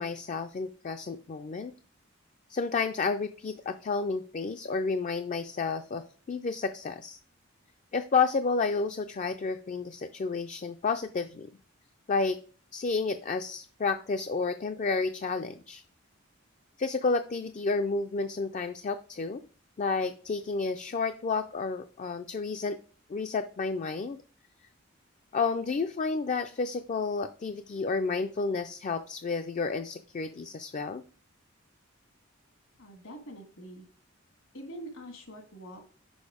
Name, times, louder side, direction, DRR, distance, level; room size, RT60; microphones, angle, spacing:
voice 1, 0.0-1.7 2.5-7.2 7.9-11.5 12.1-12.4 12.7-15.8 16.8-19.4 19.8-22.8 23.1-24.2 25.3-31.0, left 4 dB, 35° left, 8 dB, 0.3 m, -31 dB
voice 2, 32.8-33.9 34.5-35.9, right 1 dB, 70° left, 4 dB, 1.6 m, -45 dB
6.3 x 5.2 x 4.9 m, 0.41 s
head